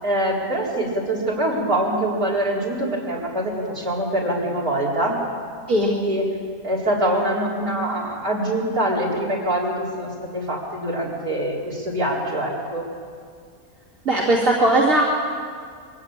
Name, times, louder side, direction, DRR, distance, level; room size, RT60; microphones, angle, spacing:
voice 1, 0.0-5.1 5.9-6.4 6.6-12.8, right 1 dB, 80° right, -4 dB, 4.8 m, -24 dB
voice 2, 14.0-15.0, right 1 dB, 60° right, -5 dB, 3.0 m, -18 dB
22.5 x 17.0 x 8.9 m, 2.1 s
omnidirectional pair, 1.5 m